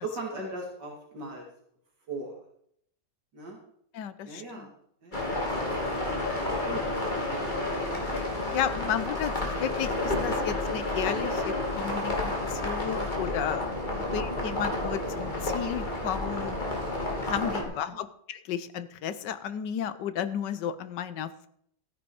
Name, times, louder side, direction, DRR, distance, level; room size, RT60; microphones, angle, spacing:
voice 1, 0.0-1.4 2.1-2.4 3.3-3.6 4.2-4.7 5.0-5.3 6.0-7.0 7.8-8.2 9.4-9.6 13.7-14.0 17.7-17.8, right 2 dB, 70° right, -1 dB, 2.9 m, -39 dB
voice 2, 3.9-4.7 8.5-13.7 14.0-16.6 17.2-21.5, left 9 dB, 75° left, 13 dB, 1.5 m, -33 dB
sound 1, 5.1-17.6, left 2 dB, 25° left, 2.9 m, -30 dB
14.0 x 9.7 x 4.8 m, 0.68 s
omnidirectional pair, 1.9 m